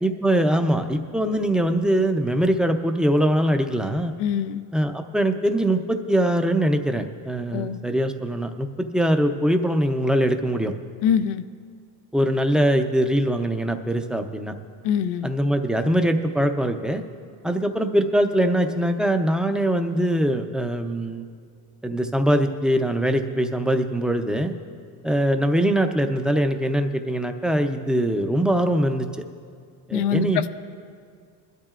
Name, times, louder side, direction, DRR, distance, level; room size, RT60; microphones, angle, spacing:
voice 1, 0.0-4.1 4.7-10.7 12.1-14.5 15.2-17.0 17.4-21.2 21.8-24.5 25.0-29.1 29.9-30.5, right 1 dB, ahead, 6 dB, 0.6 m, -22 dB
voice 2, 4.2-4.6 7.5-7.8 11.0-11.4 14.8-15.3 29.9-30.5, left 8 dB, 80° left, 11 dB, 0.6 m, -23 dB
21.0 x 12.0 x 2.5 m, 2.1 s
cardioid pair, 110°, 42 cm